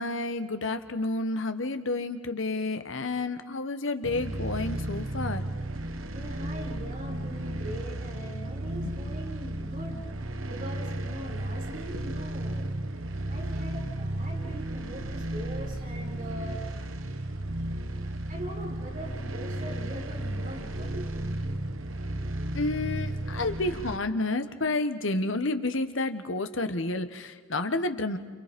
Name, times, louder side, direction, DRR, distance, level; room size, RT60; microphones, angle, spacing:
voice 1, 0.0-5.4 8.8-8.9 22.5-28.2, left 2 dB, 70° left, 8 dB, 1.4 m, -30 dB
sound 1, 4.0-24.0, right 1 dB, 80° right, 1.2 m, -34 dB
voice 2, 6.1-10.0 10.5-12.7 13.3-17.4 18.3-21.4 22.6-22.7, right 1 dB, 40° right, -1 dB, 5.6 m, -42 dB
29.5 x 28.5 x 5.3 m, 1.4 s
head